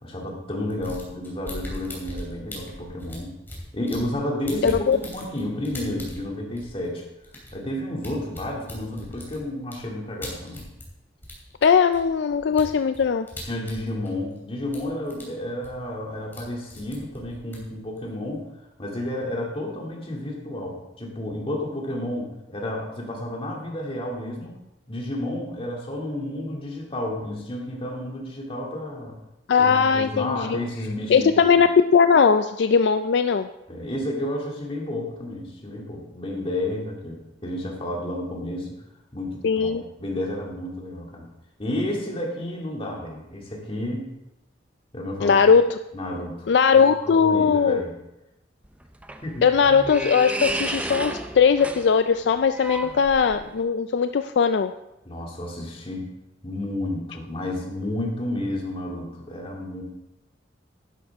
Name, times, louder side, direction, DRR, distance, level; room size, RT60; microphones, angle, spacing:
voice 1, 0.0-3.3 3.7-7.0 7.5-10.7 13.5-18.5 18.8-24.6 24.9-29.2 29.6-31.6 33.7-38.7 39.1-39.7 40.0-41.2 41.6-44.1 44.9-45.5 45.9-46.5 47.0-47.9 49.2-49.5 55.0-56.1 56.4-59.8, left 1 dB, 30° left, -2 dB, 2.4 m, -31 dB
sound 1, 0.7-4.2 4.4-10.9 11.2-14.4 14.6-15.2 15.5-16.4 16.7-18.4, left 1 dB, 10° left, 3.0 m, -40 dB
voice 2, 4.6-5.0 11.6-13.3 29.5-30.6 31.1-31.7 31.9-33.5 39.4-39.8 45.2-45.8 46.5-47.8 49.4-54.7, left 6 dB, 65° left, 9 dB, 0.4 m, -19 dB
sound 2, 48.6-53.6, right 1 dB, 5° right, 0.5 m, -32 dB
11.5 x 10.5 x 3.5 m, 0.92 s
head